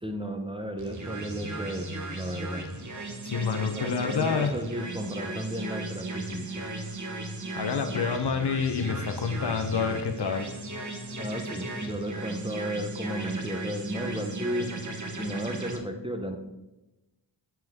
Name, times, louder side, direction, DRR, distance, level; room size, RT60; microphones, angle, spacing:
voice 1, 0.0-2.7 3.7-6.7 11.0-14.7 15.2-16.4, right 1 dB, 10° right, 4 dB, 0.7 m, -34 dB
sound 1, 0.8-15.8, right 2 dB, 40° right, 1.0 m, -36 dB
voice 2, 3.2-4.5 7.6-10.6, left 6 dB, 55° left, 7 dB, 0.7 m, -28 dB
7.6 x 5.8 x 3.5 m, 1.0 s
wide cardioid pair, 75°, 47 cm